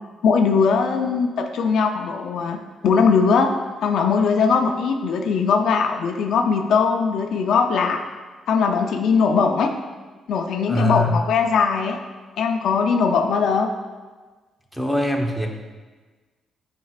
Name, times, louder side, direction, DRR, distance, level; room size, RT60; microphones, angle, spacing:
voice 1, 0.2-2.6 2.8-3.5 3.8-8.0 8.5-9.7 10.3-12.0 12.4-13.7, left 5 dB, 75° left, 4 dB, 0.5 m, -20 dB
voice 2, 10.7-11.1 14.8-15.5, left 1 dB, ahead, 1 dB, 0.9 m, -22 dB
9.3 x 4.5 x 2.4 m, 1.4 s
cardioid pair, 80°, 0 cm